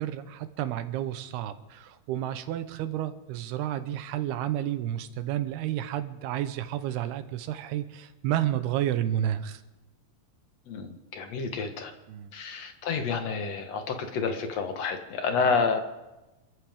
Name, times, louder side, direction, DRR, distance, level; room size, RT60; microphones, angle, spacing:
voice 1, 0.0-9.6 12.1-12.3, right 12 dB, 90° right, 11 dB, 2.9 m, -31 dB
voice 2, 10.7-11.9 12.3-15.8, left 5 dB, 60° left, 6 dB, 1.9 m, -29 dB
27.0 x 14.0 x 3.6 m, 1.0 s
omnidirectional pair, 4.5 m